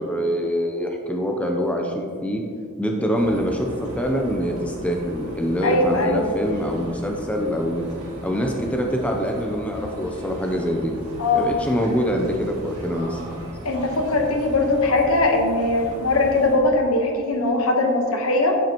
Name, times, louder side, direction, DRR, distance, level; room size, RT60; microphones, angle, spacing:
voice 1, 0.0-2.4 2.8-7.8 8.2-10.9 11.3-13.2, equal, 5° left, 1 dB, 0.5 m, -24 dB
sound 1, 3.1-16.6, equal, 80° right, 2.0 m, -38 dB
voice 2, 5.6-6.2 11.2-11.5 13.6-18.6, left 2 dB, 70° left, 2 dB, 1.1 m, -20 dB
8.9 x 7.8 x 3.0 m, 2.2 s
head